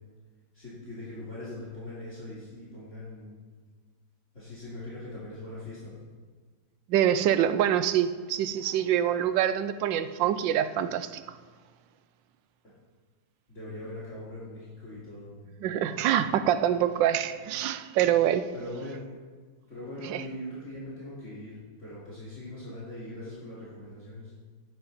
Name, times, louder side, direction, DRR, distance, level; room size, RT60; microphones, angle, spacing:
voice 1, 0.5-3.4 4.3-6.0 13.5-15.4 18.5-19.1 19.7-24.3, left 1 dB, 40° left, 3.0 m, -41 dB
voice 2, 6.9-11.1 15.6-18.5 20.0-20.2, right 10 dB, 85° right, 1.3 m, -25 dB
11.0 x 10.5 x 4.1 m
omnidirectional pair, 2.0 m